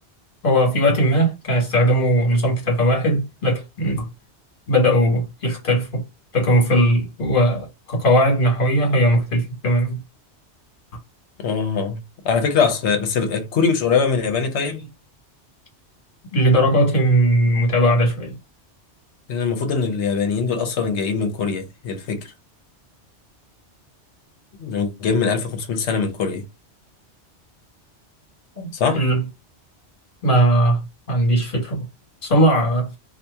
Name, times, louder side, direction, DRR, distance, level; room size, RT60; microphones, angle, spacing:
voice 1, 0.4-4.1 4.7-6.0 6.3-10.0 16.3-18.4 28.6-29.2 30.2-31.8 32.2-32.9, equal, 50° left, 1.5 m, -19 dB
voice 2, 11.4-14.8 19.3-22.3 24.6-26.4 28.7-29.0, left 5 dB, 75° left, 1.1 m, -22 dB
2.9 x 2.4 x 3.4 m
omnidirectional pair, 1.2 m